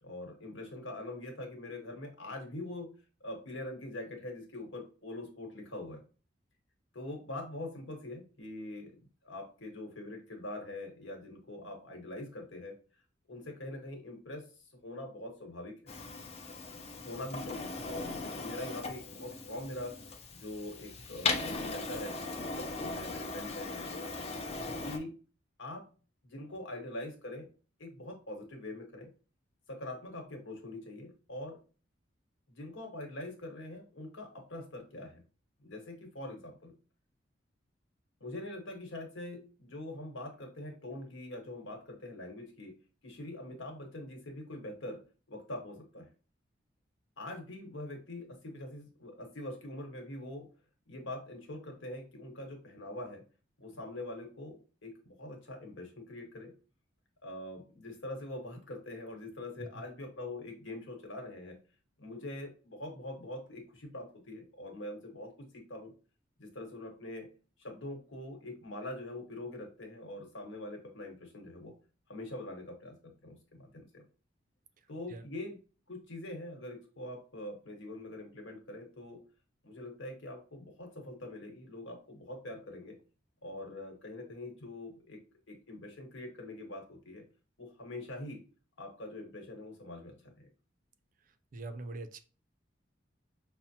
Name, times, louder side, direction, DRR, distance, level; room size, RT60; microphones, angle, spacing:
voice 1, 0.0-2.9 3.2-6.0 6.9-12.8 13.3-15.8 17.0-19.9 20.3-24.3 24.8-25.1 25.6-25.8 26.2-27.5 27.8-29.1 29.7-31.6 32.5-35.2 35.6-36.7 38.2-42.8 43.0-45.0 45.3-46.1 47.2-50.5 50.9-53.2 53.6-56.5 57.2-61.6 62.0-65.9 66.4-67.3 67.6-71.7 72.1-74.0 74.9-75.6 75.9-79.2 79.6-83.0 83.4-85.2 85.5-87.2 87.6-88.4 88.8-90.5, left 1 dB, 85° left, 2 dB, 1.2 m, -43 dB
Printer, 15.9-25.0, left 3 dB, 35° left, 0.5 m, -38 dB
voice 2, 91.5-92.2, right 2 dB, 45° right, 10 dB, 0.4 m, -42 dB
5.5 x 2.1 x 2.8 m, 0.37 s
head